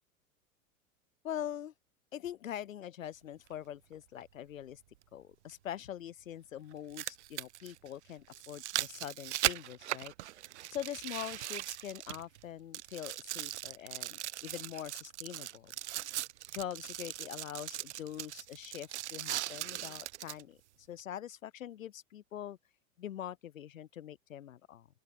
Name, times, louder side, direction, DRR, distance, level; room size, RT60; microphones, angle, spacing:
voice 1, 1.2-1.7 2.1-4.8 5.1-10.1 10.7-15.7 16.5-20.6 20.9-22.6 23.0-24.9, left 10 dB, 70° left, 0.6 m, -43 dB
sound 1, 3.5-3.6 5.5-5.6 6.7-12.4 12.7-20.4 21.0-21.1, right 15 dB, 55° right, 0.5 m, -39 dB
open air
figure-of-eight pair, 95°, 41 cm